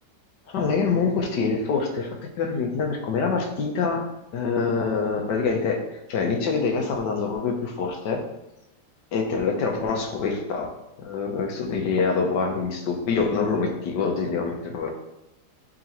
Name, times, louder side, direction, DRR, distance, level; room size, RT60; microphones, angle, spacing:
voice 1, 0.5-5.8 6.1-8.2 9.1-10.7 11.0-14.9, left 4 dB, 90° left, 2 dB, 1.6 m, -25 dB
10.5 x 3.9 x 3.0 m, 0.91 s
omnidirectional pair, 1.8 m